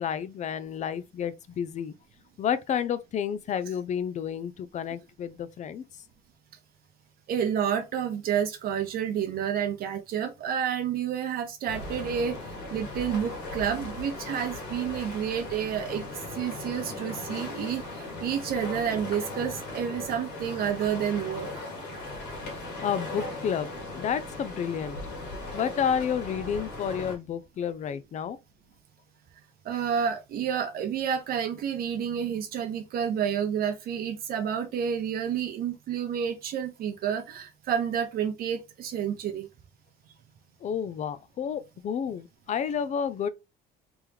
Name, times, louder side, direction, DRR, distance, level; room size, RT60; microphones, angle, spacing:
voice 1, 0.0-1.9 2.4-5.8 22.4-22.6 22.8-25.0 25.5-28.4 40.6-43.3, left 8 dB, 45° left, 0.5 m, -30 dB
voice 2, 7.3-12.4 12.7-16.0 16.3-21.5 29.6-39.5, right 8 dB, 60° right, 0.8 m, -29 dB
sound 1, 11.7-27.2, left 2 dB, 90° left, 1.7 m, -38 dB
3.6 x 3.0 x 3.4 m
cardioid pair, 110°, 17 cm